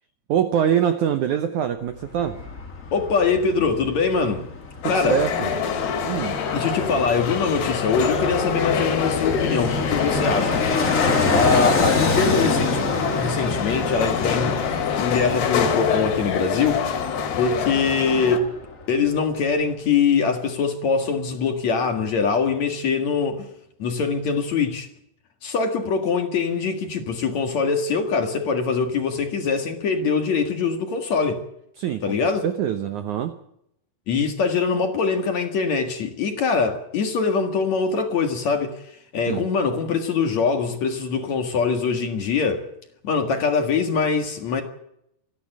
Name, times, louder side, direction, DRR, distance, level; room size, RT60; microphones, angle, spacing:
voice 1, 0.3-2.4 4.8-5.5 6.1-6.4 11.2-11.4 31.8-32.2 32.4-33.3 39.3-39.5, right 9 dB, 70° right, 1.8 m, -24 dB
Fixed-wing aircraft airplane, 1.9-18.8 19.1-19.2, left 3 dB, 30° left, 1.5 m, -28 dB
voice 2, 2.9-4.5 4.8-5.2 6.5-10.6 11.3-12.9 13.2-14.6 15.0-16.9 17.4-18.5 18.9-23.5 23.8-24.9 25.4-31.4 32.0-32.4 34.1-38.8 39.1-42.7 43.0-44.6, left 5 dB, 50° left, 2.6 m, -23 dB
sound 1, 4.8-18.4, left 7 dB, 75° left, 4.0 m, -26 dB
27.0 x 11.5 x 9.0 m
omnidirectional pair, 4.7 m